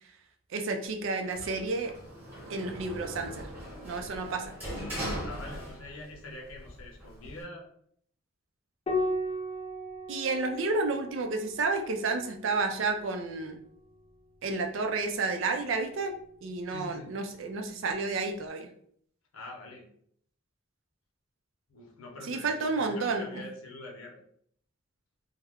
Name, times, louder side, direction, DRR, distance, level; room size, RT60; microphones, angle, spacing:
voice 1, 0.5-1.9 2.5-3.5 3.8-4.5 10.1-13.6 14.4-16.2 16.4-18.7 22.3-23.4, right 3 dB, 65° right, 5 dB, 0.4 m, -31 dB
Sliding door, 1.3-6.2 6.5-7.4, equal, 10° right, 1.0 m, -39 dB
voice 2, 5.2-7.7 16.7-17.1 19.3-19.9 21.7-24.2, left 1 dB, 85° left, 0 dB, 0.7 m, -44 dB
Piano, 8.9-13.7 15.3-16.2, left 1 dB, 30° left, 0.4 m, -37 dB
2.3 x 2.0 x 3.4 m, 0.64 s
head